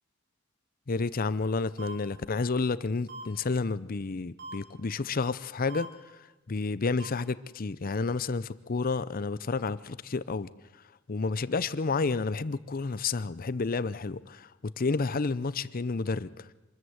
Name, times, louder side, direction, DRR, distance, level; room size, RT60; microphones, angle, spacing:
voice 1, 0.9-5.9 6.5-10.5 11.1-16.5, left 4 dB, 45° left, 0.6 m, -30 dB
sound 1, 1.8-1.9 3.1-3.2 4.4-4.5 5.7-5.9 7.0-7.1, right 2 dB, 55° right, 4.4 m, -40 dB
26.0 x 14.0 x 8.0 m
head